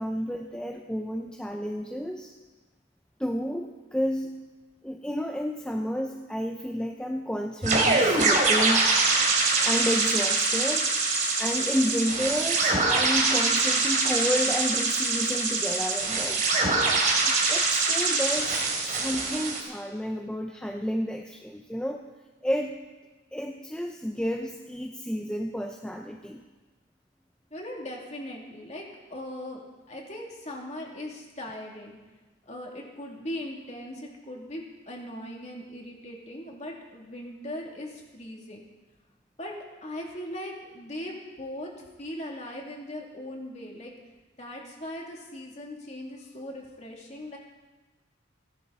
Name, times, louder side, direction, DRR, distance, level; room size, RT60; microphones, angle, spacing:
voice 1, 0.0-2.3 3.2-4.5 4.8-8.9 9.6-10.9 11.4-16.4 17.2-18.6 18.9-22.1 22.4-22.8 23.3-26.4, equal, 5° left, 2 dB, 0.7 m, -31 dB
sound 1, 7.6-19.6, right 3 dB, 40° right, 3.5 m, -24 dB
voice 2, 27.5-29.6 29.9-32.0 32.5-38.6 39.4-39.5 39.8-41.7 42.0-43.9 44.4-47.4, left 1 dB, 35° left, -1 dB, 2.9 m, -39 dB
29.0 x 11.5 x 4.2 m, 1.2 s
head